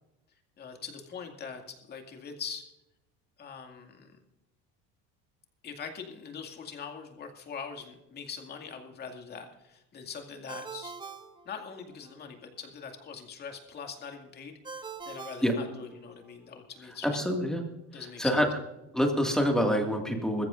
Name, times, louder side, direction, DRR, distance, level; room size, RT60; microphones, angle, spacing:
voice 1, 0.6-2.6 3.4-4.2 5.6-10.9 11.4-17.2 17.9-18.4, left 6 dB, 30° left, 4 dB, 2.2 m, -42 dB
Ringtone, 10.5-12.1 14.6-16.3, right 5 dB, 15° right, 0.9 m, -44 dB
voice 2, 17.0-17.6 17.9-18.5 18.9-20.5, equal, ahead, 2 dB, 2.0 m, -26 dB
21.5 x 14.5 x 2.6 m, 0.91 s
cardioid pair, 150°, 32 cm